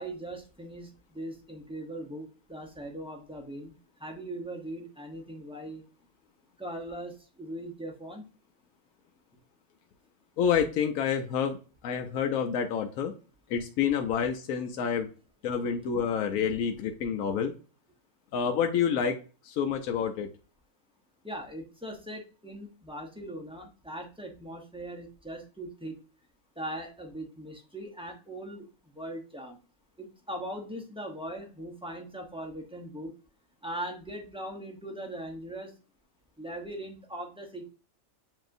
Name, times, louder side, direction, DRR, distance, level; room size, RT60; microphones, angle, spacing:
voice 1, 0.0-3.7 4.0-5.8 6.6-8.2 21.2-26.0 26.6-28.7 28.9-29.6 30.0-33.1 33.6-35.7 36.4-37.7, right 1 dB, 5° right, 1 dB, 0.5 m, -40 dB
voice 2, 10.4-11.6 11.8-13.1 13.5-15.1 15.4-17.5 18.3-19.2 19.4-20.3, left 7 dB, 70° left, 4 dB, 1.0 m, -28 dB
7.3 x 2.8 x 2.6 m, 0.35 s
omnidirectional pair, 1.6 m